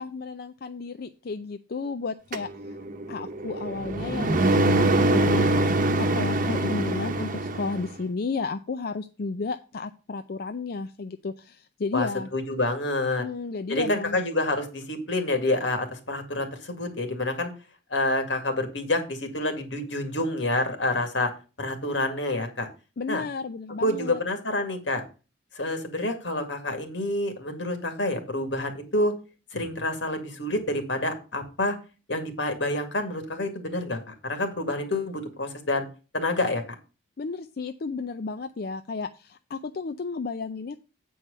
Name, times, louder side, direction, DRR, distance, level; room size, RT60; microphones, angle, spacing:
voice 1, 0.0-2.8 3.1-5.5 6.0-12.3 13.2-14.2 23.0-24.2 37.2-40.8, left 4 dB, 55° left, 8 dB, 0.5 m, -33 dB
sound 1, 2.3-7.9, right 2 dB, 45° right, 0.9 m, -24 dB
voice 2, 11.9-13.2 13.7-17.5 17.9-21.3 21.6-22.7 23.1-23.2 23.8-25.0 25.5-29.1 29.5-31.8 32.1-35.9 36.1-36.6, left 2 dB, 85° left, 6 dB, 2.1 m, -28 dB
8.5 x 4.7 x 6.6 m, 0.33 s
head